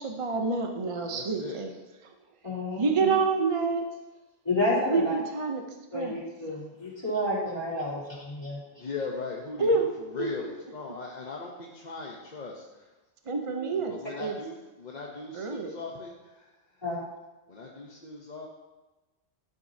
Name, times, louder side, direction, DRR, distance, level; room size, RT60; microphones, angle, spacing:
voice 1, 0.0-1.7 2.8-3.9 4.9-5.6 5.9-6.2 9.6-10.5 13.3-14.4 15.3-15.7, right 4 dB, 35° right, 4 dB, 0.6 m, -28 dB
voice 2, 1.0-1.6 8.8-12.9 13.4-16.5 17.5-18.5, left 4 dB, 45° left, -2 dB, 0.9 m, -39 dB
voice 3, 2.4-3.1 4.5-5.1 5.9-8.6 16.8-17.0, left 1 dB, 25° left, -8 dB, 3.5 m, -30 dB
12.0 x 8.1 x 2.7 m, 1.1 s
omnidirectional pair, 1.1 m